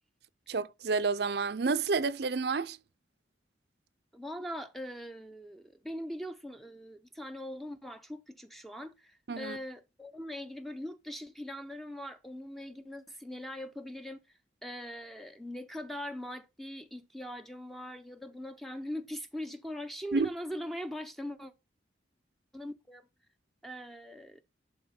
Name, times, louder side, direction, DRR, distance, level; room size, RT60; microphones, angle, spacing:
voice 1, 0.5-2.8 9.3-9.6 20.1-20.3, right 4 dB, 55° right, 0.5 m, -30 dB
voice 2, 4.1-14.2 14.6-21.5 22.5-23.1 23.6-24.4, equal, ahead, 0.5 m, -41 dB
11.0 x 4.0 x 4.3 m
head